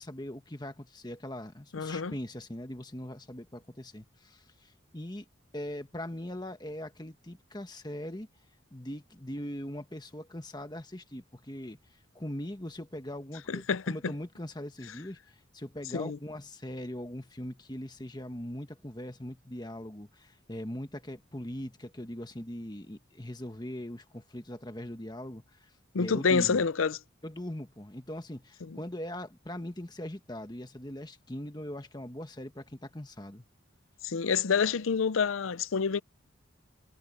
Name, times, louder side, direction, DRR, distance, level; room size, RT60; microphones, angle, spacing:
voice 1, 0.0-5.3 5.5-8.3 8.7-11.8 12.1-25.7 26.0-26.6 27.2-33.4, left 1 dB, 20° left, 1.5 m, -41 dB
voice 2, 1.7-2.1 13.5-14.1 15.9-16.2 25.9-27.0 34.0-36.0, left 5 dB, 90° left, 0.6 m, -27 dB
head